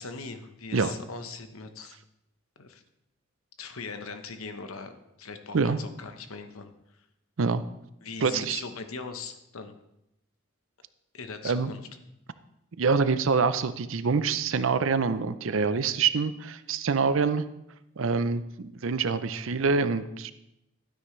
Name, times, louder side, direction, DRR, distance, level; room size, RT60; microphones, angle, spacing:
voice 1, 0.0-2.0 2.6-2.8 3.6-6.7 8.0-9.8 11.1-11.8, left 4 dB, 85° left, 8 dB, 1.0 m, -40 dB
voice 2, 8.2-8.6 11.4-11.7 12.8-17.4 18.0-20.3, right 5 dB, 70° right, 13 dB, 0.5 m, -26 dB
12.0 x 9.6 x 3.2 m, 0.84 s
head